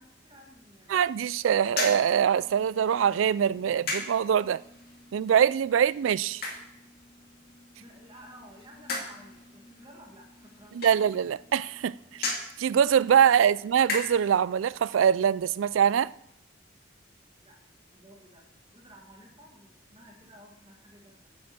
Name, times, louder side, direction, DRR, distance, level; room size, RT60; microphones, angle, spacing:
voice 1, 0.0-1.3 7.8-11.1 13.5-13.6 17.4-17.6 17.9-21.3, equal, 25° right, 1.8 m, -54 dB
voice 2, 0.9-4.6 5.1-6.4 10.7-12.3 12.6-16.1, right 8 dB, 90° right, 0.3 m, -23 dB
sound 1, 1.6-14.4, left 3 dB, 50° left, 2.5 m, -39 dB
9.5 x 8.4 x 7.6 m
head